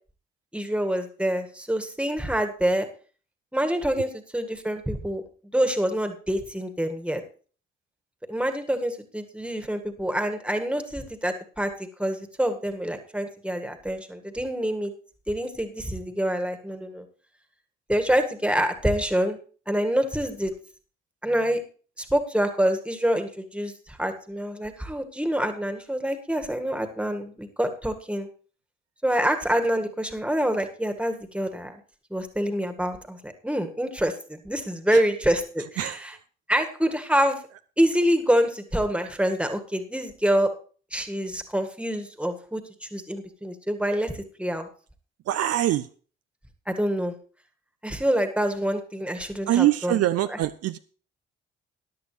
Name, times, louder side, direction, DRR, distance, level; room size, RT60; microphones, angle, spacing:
voice 1, 0.5-2.9 3.5-5.2 5.5-7.2 8.3-11.7 12.0-14.9 15.3-17.0 17.9-19.4 19.7-20.5 21.2-21.6 22.0-28.3 29.0-31.8 32.1-35.9 36.5-37.4 37.8-40.5 40.9-44.7 46.7-47.1 47.8-49.9, equal, 5° right, 7 dB, 1.7 m, -26 dB
voice 2, 35.8-36.2 45.3-45.9 49.5-50.8, right 13 dB, 60° right, 12 dB, 0.5 m, -24 dB
14.0 x 10.5 x 3.2 m, 0.40 s
hypercardioid pair, 45°, 29 cm